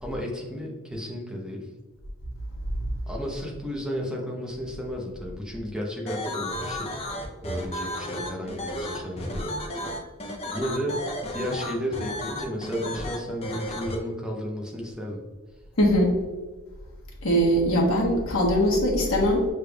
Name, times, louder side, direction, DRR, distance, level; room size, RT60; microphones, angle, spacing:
voice 1, 0.0-1.7 3.1-7.0 7.4-9.6 10.5-11.0 11.3-15.2, equal, 5° right, -2 dB, 0.8 m, -33 dB
sound 1, 6.1-13.9, left 1 dB, 30° left, 0.6 m, -33 dB
voice 2, 15.8-16.1 17.2-19.5, equal, 75° left, -2 dB, 1.3 m, -21 dB
6.5 x 3.3 x 2.3 m, 1.3 s
head